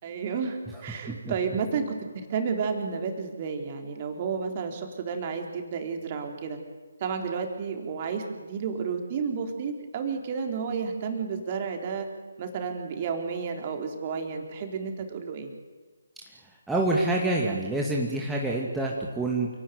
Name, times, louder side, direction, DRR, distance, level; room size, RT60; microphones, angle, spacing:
voice 1, 0.0-6.6 7.0-12.1 12.4-15.5, right 5 dB, 30° right, 4 dB, 3.9 m, -31 dB
voice 2, 16.7-19.5, right 2 dB, 5° right, -3 dB, 2.3 m, -26 dB
29.0 x 18.5 x 9.5 m, 1.3 s
figure-of-eight pair, 145°, 0 cm